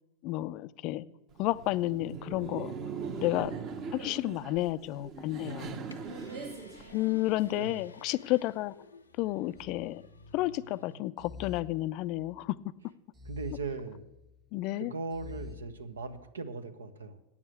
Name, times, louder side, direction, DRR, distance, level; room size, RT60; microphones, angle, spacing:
voice 1, 0.2-1.1 1.4-2.7 3.2-3.5 3.9-5.8 6.9-8.7 9.2-10.0 10.3-12.6 14.5-14.9, left 17 dB, 45° left, 17 dB, 0.4 m, -31 dB
Laughter, 1.3-7.6, right 5 dB, 40° right, 1.1 m, -41 dB
sound 1, 5.0-11.0, left 2 dB, 85° left, 0.7 m, -55 dB
voice 2, 7.5-7.8 13.2-14.1 14.8-17.2, right 4 dB, 75° right, 11 dB, 0.8 m, -39 dB
sound 2, 9.6-10.5 11.2-12.5 13.1-14.4 15.1-16.3, left 4 dB, 20° right, 0.8 m, -48 dB
8.5 x 7.2 x 8.1 m, 0.98 s
figure-of-eight pair, 90°, 0 cm